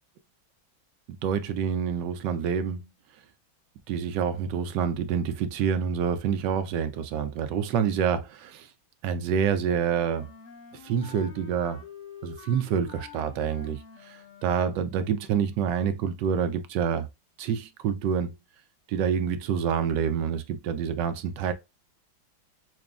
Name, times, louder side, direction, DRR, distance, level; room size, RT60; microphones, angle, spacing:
voice 1, 1.1-2.9 3.9-8.7 9.0-10.3 10.8-11.8 12.2-13.8 14.1-14.2 14.4-17.1 17.4-18.3 18.9-21.5, right 7 dB, 75° right, 1.1 m, -27 dB
Wind instrument woodwind instrument, 9.6-15.1, left 7 dB, 50° left, 1.2 m, -48 dB
5.9 x 2.2 x 2.4 m
omnidirectional pair, 2.2 m